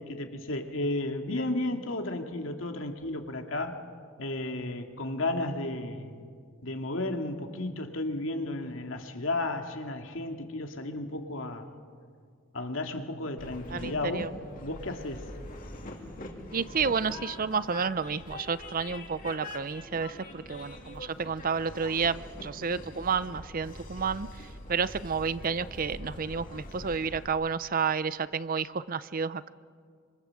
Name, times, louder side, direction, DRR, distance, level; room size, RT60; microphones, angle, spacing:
voice 1, 0.0-3.8 4.2-6.2 6.6-11.7 12.5-15.3, left 2 dB, 80° left, 4 dB, 2.3 m, -33 dB
Train, 13.4-27.3, left 1 dB, 45° left, 3.1 m, -44 dB
voice 2, 13.7-14.4 16.5-24.3 24.7-29.5, right 5 dB, 45° right, 16 dB, 0.6 m, -30 dB
26.0 x 26.0 x 7.7 m, 2.1 s
head